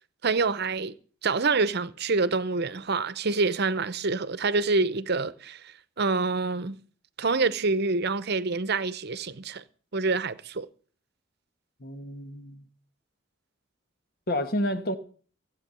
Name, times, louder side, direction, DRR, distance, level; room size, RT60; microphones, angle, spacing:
voice 1, 0.2-1.0 1.2-5.6 6.0-6.8 7.2-9.6 9.9-10.7, right 3 dB, 55° right, 0.8 m, -26 dB
voice 2, 11.8-12.7 14.3-15.0, left 1 dB, 50° left, 1.4 m, -30 dB
16.0 x 8.2 x 6.9 m
head